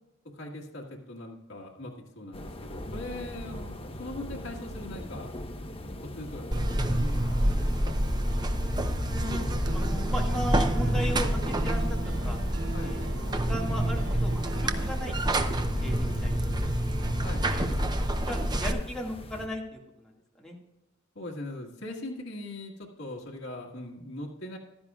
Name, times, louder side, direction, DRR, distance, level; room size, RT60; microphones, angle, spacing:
voice 1, 0.2-3.7 4.0-5.3 6.0-8.0 10.9-11.1 12.7-13.0 17.2-17.5 21.2-24.6, left 1 dB, 75° left, -2 dB, 1.7 m, -41 dB
sound 1, 2.3-19.5, left 1 dB, 30° left, 1.1 m, -40 dB
Buzz, 6.5-18.7, right 1 dB, 20° right, 0.7 m, -28 dB
voice 2, 8.9-12.4 12.8-15.5 15.8-16.4 16.7-16.9 17.5-20.1 20.4-20.5, equal, 5° left, -2 dB, 2.0 m, -37 dB
sound 2, 9.2-14.9, right 1 dB, 75° right, 0.8 m, -40 dB
15.0 x 12.0 x 2.4 m, 0.94 s
head